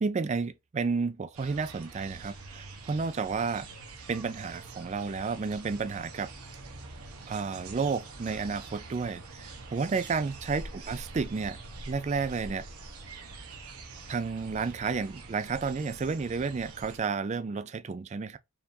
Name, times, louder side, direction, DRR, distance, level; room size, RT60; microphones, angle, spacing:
voice 1, 0.0-3.7 4.1-6.3 7.3-11.6 11.9-12.7 14.1-18.4, right 4 dB, 30° right, 0.3 m, -31 dB
sound 1, 1.3-17.0, right 3 dB, 75° right, 0.9 m, -45 dB
4.7 x 3.5 x 2.6 m
head